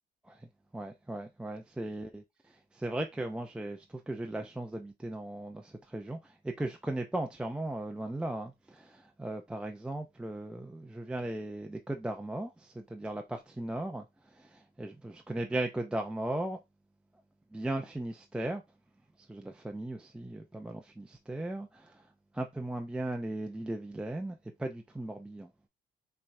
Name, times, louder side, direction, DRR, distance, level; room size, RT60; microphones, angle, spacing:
voice 1, 0.7-16.6 17.5-18.6 19.3-22.1 22.3-25.7, right 1 dB, 5° right, 0.4 m, -37 dB
5.4 x 3.3 x 2.6 m
cardioid pair, 110°, 17 cm